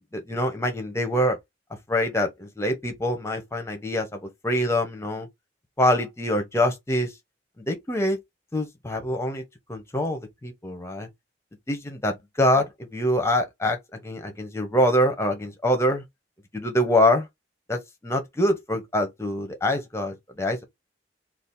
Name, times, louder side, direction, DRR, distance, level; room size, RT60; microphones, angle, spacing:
voice 1, 0.1-1.4 1.9-5.3 5.8-7.1 7.6-8.2 8.5-9.4 9.7-11.1 11.7-16.0 16.5-17.3 17.7-20.6, left 1 dB, 15° left, 0.8 m, -25 dB
2.8 x 2.4 x 3.6 m
head